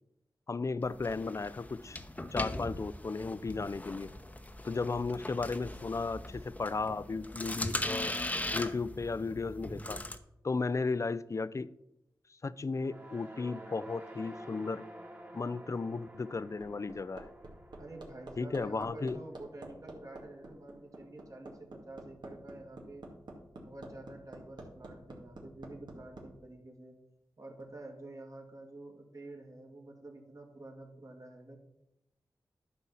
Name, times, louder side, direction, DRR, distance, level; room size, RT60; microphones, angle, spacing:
voice 1, 0.5-2.0 2.3-4.1 4.6-8.2 8.5-10.0 10.4-11.7 12.4-14.8 15.3-17.3 18.4-19.2, left 4 dB, 40° left, 16 dB, 0.5 m, -35 dB
sound 1, 0.8-10.2, left 1 dB, 20° left, 0.8 m, -39 dB
sound 2, 12.7-21.0, right 1 dB, 25° right, 1.8 m, -51 dB
Hammer, 16.4-26.3 27.6-27.7, right 2 dB, 70° right, 2.1 m, -48 dB
voice 2, 17.8-23.0 23.5-27.0 27.4-31.6, right 2 dB, 45° right, 1 dB, 2.4 m, -49 dB
11.0 x 4.4 x 7.1 m, 0.87 s
cardioid pair, 50°, 8 cm